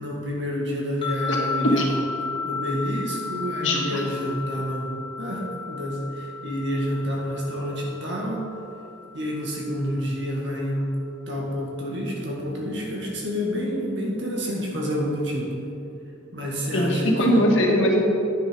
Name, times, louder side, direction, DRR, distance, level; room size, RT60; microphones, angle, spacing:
voice 1, 0.0-2.0 2.4-8.4 9.1-10.9 11.3-15.5 16.3-17.5, equal, 65° right, -2 dB, 2.1 m, -28 dB
sound 1, 1.0-10.3, left 5 dB, 25° left, 1.3 m, -34 dB
voice 2, 3.6-4.0 16.7-18.0, equal, 80° left, -1 dB, 1.7 m, -20 dB
10.0 x 6.8 x 5.4 m, 2.8 s
head